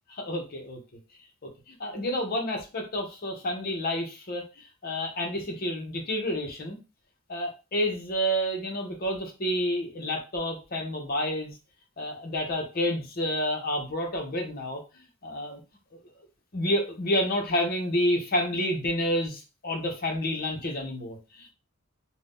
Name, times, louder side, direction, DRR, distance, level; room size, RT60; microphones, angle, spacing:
voice 1, 0.2-0.8 1.7-4.4 4.8-6.8 7.3-11.5 12.0-14.8 15.2-15.6 16.5-21.5, equal, 50° left, 2 dB, 0.8 m, -29 dB
2.6 x 2.2 x 3.5 m, 0.30 s
head